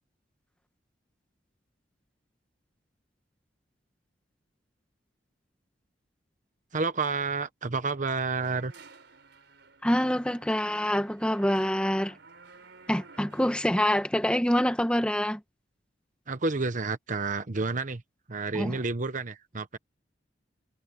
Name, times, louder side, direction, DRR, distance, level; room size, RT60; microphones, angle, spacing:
voice 1, 6.7-8.7 16.3-18.0 18.3-19.8, right 3 dB, 45° right, 1.1 m, -30 dB
sound 1, 8.4-14.1, right 4 dB, 70° right, 4.6 m, -54 dB
voice 2, 9.8-12.1 12.9-15.4 18.5-18.8, equal, 5° left, 1.4 m, -26 dB
head